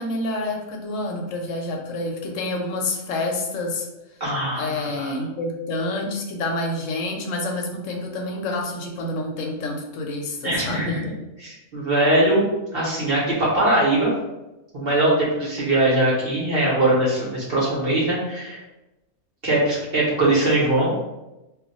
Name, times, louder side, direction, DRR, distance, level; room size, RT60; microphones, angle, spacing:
voice 1, 0.0-3.9 4.6-11.0, left 2 dB, 70° left, 1 dB, 0.9 m, -28 dB
voice 2, 4.2-4.9 10.4-14.1 14.7-18.6 19.4-20.9, right 1 dB, 50° right, -7 dB, 0.9 m, -21 dB
2.5 x 2.1 x 3.9 m, 0.98 s
omnidirectional pair, 1.5 m